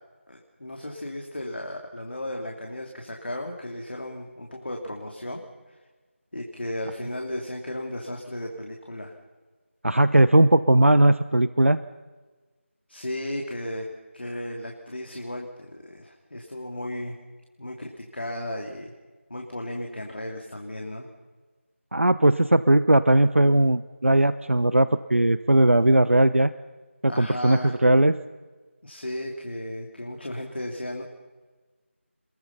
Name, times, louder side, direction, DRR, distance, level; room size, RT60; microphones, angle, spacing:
voice 1, 0.3-5.4 6.3-9.2 12.9-17.2 17.6-18.9 19.3-21.1 27.1-27.7 28.8-31.0, left 1 dB, 55° left, 1 dB, 2.9 m, -35 dB
voice 2, 9.8-11.8 21.9-26.5 27.0-28.1, right 1 dB, 70° right, 14 dB, 0.9 m, -19 dB
28.0 x 22.0 x 5.8 m, 1.3 s
figure-of-eight pair, 170°, 7 cm